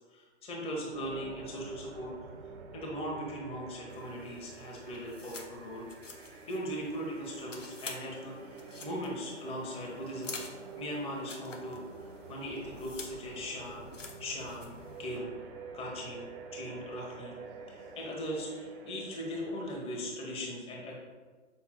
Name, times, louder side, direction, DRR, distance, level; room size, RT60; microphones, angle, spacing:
voice 1, 0.1-2.1 2.7-5.9 6.4-11.8 12.3-13.9 14.2-15.3 15.7-16.3 16.5-17.3 17.7-20.9, equal, 15° left, -2 dB, 1.4 m, -39 dB
sound 1, 0.9-20.4, right 3 dB, 45° right, 1.1 m, -48 dB
sound 2, 3.9-15.2, left 3 dB, 90° left, 1.0 m, -49 dB
7.1 x 5.9 x 2.3 m, 1.4 s
figure-of-eight pair, 115°, 37 cm